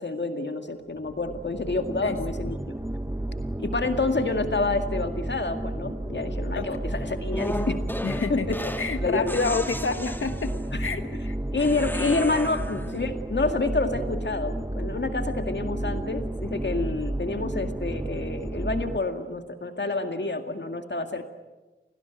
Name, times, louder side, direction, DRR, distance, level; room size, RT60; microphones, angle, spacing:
voice 1, 0.0-2.7 3.6-7.8 8.3-8.7 9.0-9.4 10.7-10.9 11.5-21.2, left 3 dB, 60° left, 6 dB, 2.1 m, -28 dB
sound 1, 1.0-19.0, right 1 dB, 10° right, 1.2 m, -32 dB
sound 2, 7.3-8.9 9.3-10.7 11.6-13.0, left 1 dB, 10° left, 2.4 m, -35 dB
voice 2, 8.0-8.5 8.8-10.5 10.8-11.0 11.3-11.4 11.9-12.2, left 4 dB, 75° left, 8 dB, 1.5 m, -28 dB
28.5 x 19.0 x 9.3 m, 1.2 s
wide cardioid pair, 70°, 21 cm